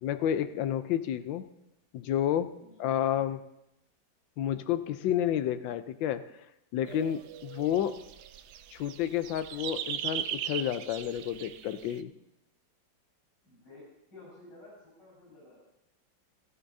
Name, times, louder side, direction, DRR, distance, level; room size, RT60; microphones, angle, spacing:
voice 1, 0.0-1.5 1.9-3.4 4.4-6.2 6.7-8.0 8.7-12.1, left 10 dB, 85° left, 12 dB, 1.4 m, -30 dB
voice 2, 2.6-3.0 13.4-13.8 14.1-15.6, left 2 dB, 65° left, -5 dB, 5.3 m, -53 dB
sound 1, 6.9-12.0, right 10 dB, 70° right, 1.0 m, -39 dB
17.5 x 13.5 x 2.7 m, 0.84 s
omnidirectional pair, 2.0 m